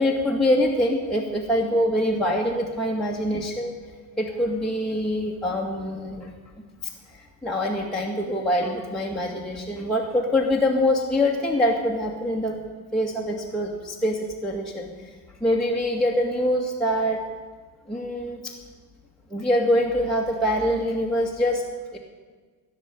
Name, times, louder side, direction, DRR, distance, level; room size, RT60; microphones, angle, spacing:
voice 1, 0.0-3.7 4.2-6.3 7.1-12.6 12.9-15.1 15.4-17.2 17.9-18.5 19.3-21.6 21.9-22.0, left 1 dB, ahead, -4 dB, 2.2 m, -24 dB
16.0 x 6.7 x 9.2 m, 1.4 s
hypercardioid pair, 65°, 45 cm